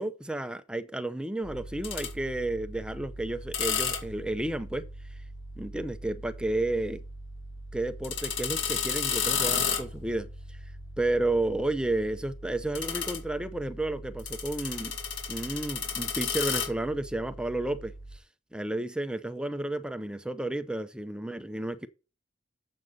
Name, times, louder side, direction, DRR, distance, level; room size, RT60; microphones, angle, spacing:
voice 1, 0.0-4.9 5.6-7.0 7.7-10.6 11.0-15.0 15.3-18.2 18.5-21.9, right 2 dB, 5° right, 0.5 m, -32 dB
sound 1, 1.4-18.2, left 6 dB, 70° left, 3.1 m, -35 dB
7.8 x 5.3 x 6.2 m
head